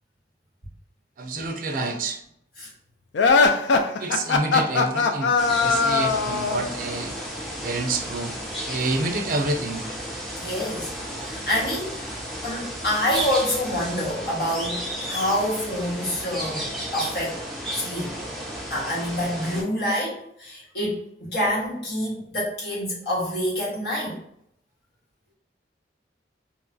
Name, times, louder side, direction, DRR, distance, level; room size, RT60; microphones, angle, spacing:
voice 1, 1.2-2.2 4.0-5.3 5.6-7.1 7.6-8.3 8.7-9.8, right 3 dB, 50° right, 5 dB, 0.4 m, -28 dB
sound 1, 3.1-6.7, left 4 dB, 85° left, 0.3 m, -20 dB
sound 2, 5.4-19.6, equal, ahead, 0.5 m, -33 dB
voice 2, 10.4-12.1 12.4-17.4 17.7-18.2 18.7-24.2, equal, 65° left, -6 dB, 1.4 m, -27 dB
2.8 x 2.3 x 2.6 m, 0.73 s
head